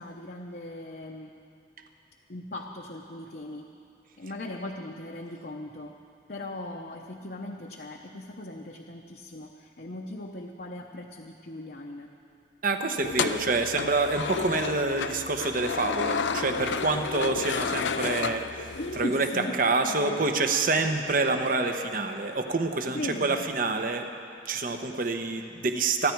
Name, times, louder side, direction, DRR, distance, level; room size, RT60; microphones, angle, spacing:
voice 1, 0.0-1.3 2.3-3.7 4.2-5.9 6.3-12.1 18.7-20.3 22.9-23.4, left 1 dB, 55° left, 0 dB, 0.8 m, -38 dB
voice 2, 12.6-18.7 19.0-19.3 19.6-24.1 24.4-26.1, right 3 dB, 50° right, 6 dB, 1.0 m, -27 dB
sound 1, 13.0-19.0, left 5 dB, 85° left, 0.6 m, -31 dB
28.0 x 10.5 x 4.7 m, 2.7 s
head